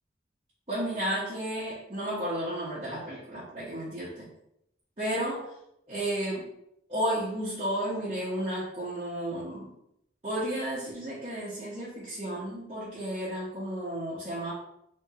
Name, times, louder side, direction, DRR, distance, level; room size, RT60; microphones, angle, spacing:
voice 1, 0.7-4.3 5.0-5.5 5.9-6.5 6.9-9.7 10.2-14.5, right 1 dB, 35° right, -11 dB, 1.1 m, -32 dB
3.5 x 3.3 x 3.7 m, 0.77 s
head